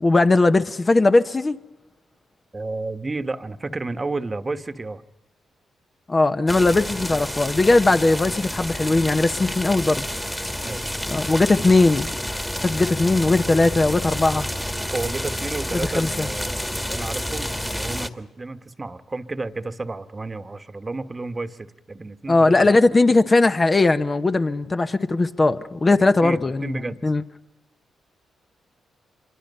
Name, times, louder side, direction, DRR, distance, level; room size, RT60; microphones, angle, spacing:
voice 1, 0.0-1.6 6.1-10.1 11.1-12.1 12.6-14.5 15.7-16.3 22.3-27.2, left 2 dB, 30° left, 0.9 m, -19 dB
voice 2, 2.5-5.0 10.6-11.0 14.9-22.7 25.9-27.0, right 3 dB, 30° right, 1.3 m, -32 dB
sound 1, 6.5-18.1, equal, 10° left, 1.7 m, -29 dB
26.5 x 23.5 x 5.5 m
supercardioid pair, 60°, 0 cm